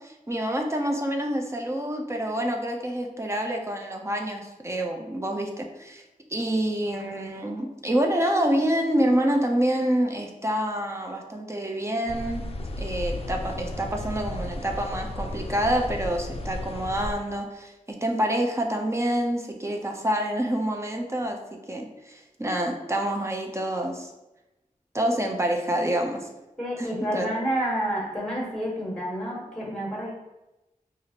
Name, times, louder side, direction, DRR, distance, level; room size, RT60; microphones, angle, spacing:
voice 1, 0.0-6.0 6.3-12.5 12.8-17.7 18.0-24.1 24.9-26.3 26.8-27.3, right 1 dB, 20° right, 2 dB, 0.5 m, -27 dB
sound 1, 12.1-17.1, left 1 dB, 45° left, 0.4 m, -34 dB
voice 2, 26.6-30.1, right 1 dB, 5° left, -4 dB, 1.5 m, -29 dB
4.8 x 2.5 x 2.8 m, 0.99 s
wide cardioid pair, 65°, 15 cm